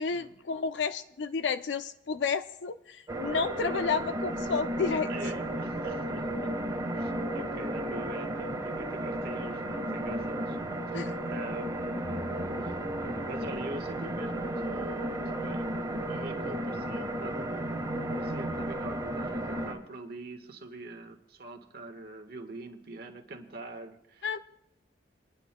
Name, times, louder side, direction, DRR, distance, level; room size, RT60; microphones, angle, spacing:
voice 1, 0.0-5.1 10.9-11.1 24.2-24.4, left 5 dB, 80° left, 11 dB, 0.5 m, -31 dB
sound 1, 3.1-19.7, right 1 dB, 20° right, 1.5 m, -33 dB
voice 2, 5.1-6.5 6.9-10.6 11.3-12.8 13.2-15.7 16.0-24.3, right 2 dB, 60° right, 4 dB, 1.4 m, -44 dB
sound 2, 7.0-15.1 15.7-15.8 16.0-16.3, left 1 dB, 15° left, 1.5 m, -48 dB
28.5 x 10.0 x 2.2 m, 0.85 s
head